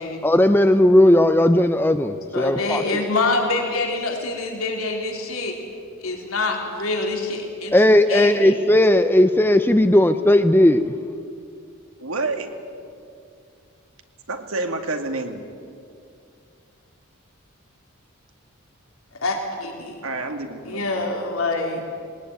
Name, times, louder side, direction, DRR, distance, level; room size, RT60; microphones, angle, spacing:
voice 1, 0.2-2.8 7.7-10.8, left 1 dB, 10° left, 9 dB, 0.6 m, -16 dB
voice 2, 2.3-5.6 6.0-7.7 8.1-8.5 19.1-20.0 20.7-21.8, left 3 dB, 85° left, 1 dB, 3.5 m, -25 dB
voice 3, 12.0-12.5 14.3-15.4 20.0-20.9, right 3 dB, 85° right, 5 dB, 2.2 m, -28 dB
20.5 x 19.5 x 9.4 m, 2.3 s
head